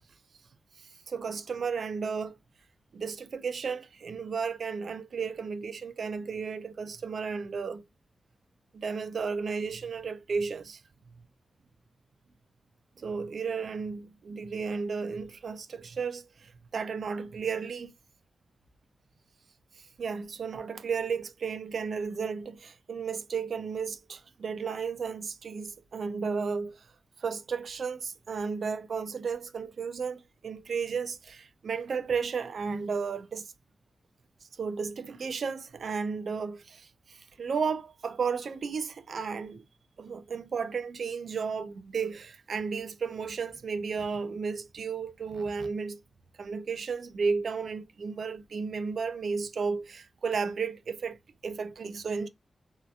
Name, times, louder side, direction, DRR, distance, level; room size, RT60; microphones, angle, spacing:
voice 1, 0.8-2.4 2.9-7.8 8.7-10.8 13.0-17.9 20.0-26.9 27.2-33.5 34.6-39.6 40.0-46.0 46.4-51.2 51.4-52.3, right 5 dB, 60° right, 0.3 m, -33 dB
2.7 x 2.3 x 2.2 m
wide cardioid pair, 175°, 0 cm